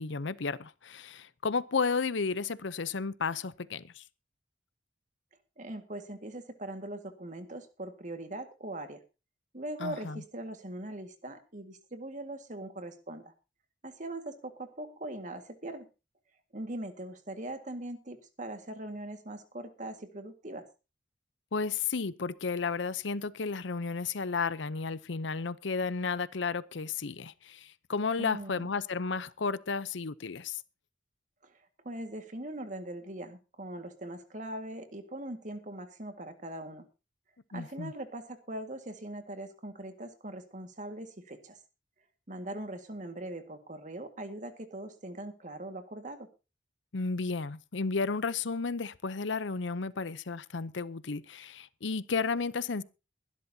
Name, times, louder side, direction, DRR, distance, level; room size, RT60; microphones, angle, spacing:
voice 1, 0.0-4.0 9.8-10.2 21.5-30.6 37.5-37.9 46.9-52.8, left 4 dB, 75° left, 0.7 m, -33 dB
voice 2, 5.6-9.0 9.5-13.3 13.8-15.9 16.5-20.7 28.2-28.7 31.4-31.5 31.8-36.9 37.5-41.6 42.3-46.3, right 1 dB, 40° right, 1.9 m, -41 dB
22.0 x 12.0 x 2.8 m
head